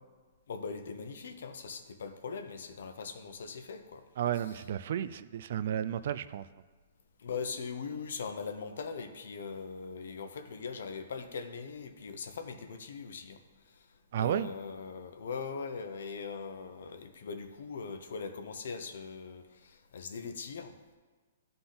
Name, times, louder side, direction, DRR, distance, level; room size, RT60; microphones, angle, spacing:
voice 1, 0.5-4.0 7.2-13.4 14.2-20.7, left 5 dB, 70° left, 7 dB, 0.8 m, -40 dB
voice 2, 4.2-6.5 14.1-14.5, right 10 dB, 50° right, 13 dB, 0.3 m, -32 dB
11.5 x 3.9 x 3.9 m, 1.4 s
hypercardioid pair, 165°, 0 cm